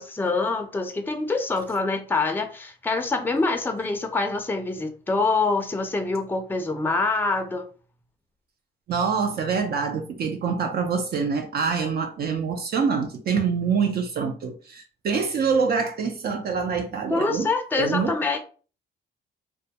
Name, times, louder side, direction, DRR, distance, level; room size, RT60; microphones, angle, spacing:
voice 1, 0.0-7.7 17.1-18.4, left 3 dB, 10° left, 0.4 m, -25 dB
voice 2, 8.9-17.5 17.7-18.2, right 5 dB, 55° right, 0.4 m, -25 dB
2.2 x 2.1 x 2.7 m
cardioid pair, 90°, 20 cm